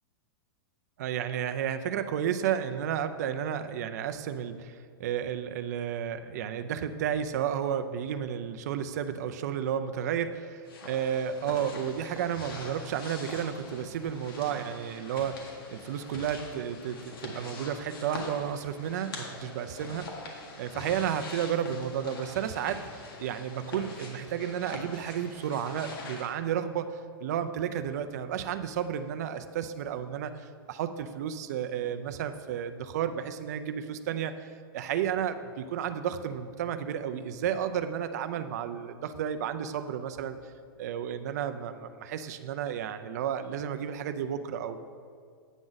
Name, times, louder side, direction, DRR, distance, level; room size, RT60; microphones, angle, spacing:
voice 1, 1.0-10.4 10.8-20.1 20.6-34.3 34.7-40.4 40.8-44.8, right 9 dB, 45° right, 9 dB, 0.4 m, -32 dB
sound 1, 10.6-26.3, left 2 dB, 65° left, 1.6 m, -44 dB
8.9 x 6.1 x 3.9 m, 2.1 s
supercardioid pair, 175°, 13 cm